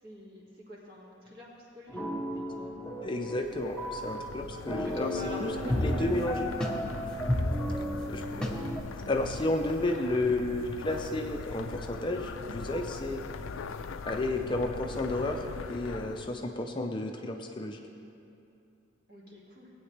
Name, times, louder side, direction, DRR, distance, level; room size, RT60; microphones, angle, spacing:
voice 1, 0.0-2.7 4.8-6.5 19.1-19.7, left 1 dB, 50° right, -4 dB, 2.2 m, -46 dB
sound 1, 1.9-8.8, equal, 5° left, 0.9 m, -33 dB
sound 2, 3.0-16.5, left 4 dB, 85° left, 0.4 m, -41 dB
voice 2, 3.0-5.5 5.8-6.5 8.1-8.7 8.9-13.2 14.1-15.4 15.7-17.8, left 2 dB, 25° left, 4 dB, 0.5 m, -32 dB
18.0 x 8.7 x 3.3 m, 2.7 s
head